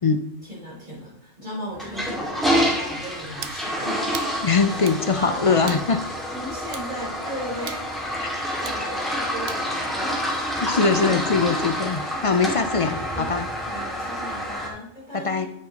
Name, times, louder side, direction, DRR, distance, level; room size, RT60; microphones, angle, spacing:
voice 1, 0.4-4.5 5.1-5.8 6.3-10.4 11.0-11.2 12.8-15.5, equal, 40° right, -8 dB, 4.3 m, -37 dB
Toilet flush, 1.7-14.7, equal, ahead, 1.9 m, -28 dB
sound 1, 3.4-3.6 4.1-4.3 4.9-5.0 5.7-5.9 6.7-6.9 7.7-7.9 8.6-8.8 9.5-9.7, right 8 dB, 65° right, 0.9 m, -37 dB
voice 2, 4.4-6.0 8.2-8.6 10.6-13.5 15.1-15.5, left 4 dB, 50° left, 8 dB, 0.4 m, -22 dB
9.9 x 8.1 x 2.9 m, 0.74 s
omnidirectional pair, 1.3 m